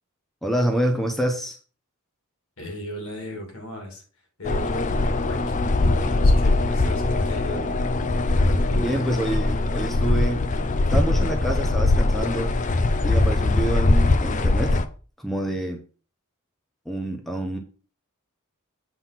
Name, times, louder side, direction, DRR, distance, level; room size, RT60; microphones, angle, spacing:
voice 1, 0.4-1.6 8.8-10.4 10.9-12.5 13.0-14.8 15.2-15.8 16.9-17.6, right 1 dB, ahead, 3 dB, 0.8 m, -27 dB
voice 2, 2.6-4.0 4.4-7.8 8.4-9.0, equal, 65° left, 3 dB, 2.5 m, -36 dB
sound 1, 4.4-14.8, left 2 dB, 35° left, 0.5 m, -21 dB
7.5 x 3.9 x 5.7 m, 0.38 s
head